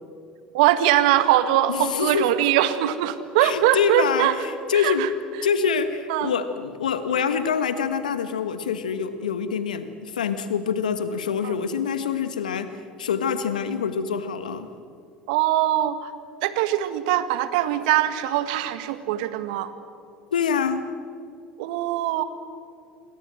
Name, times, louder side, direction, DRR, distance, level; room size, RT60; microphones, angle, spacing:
voice 1, 0.5-4.4 4.7-5.1 6.1-6.3 11.4-11.6 15.3-16.1 16.4-19.7 21.6-22.2, right 13 dB, 70° right, 11 dB, 1.7 m, -22 dB
voice 2, 1.7-2.3 3.4-5.1 5.4-14.7 20.3-20.9, left 6 dB, 85° left, 11 dB, 1.6 m, -25 dB
28.0 x 23.0 x 7.7 m, 2.4 s
hypercardioid pair, 70°, 4 cm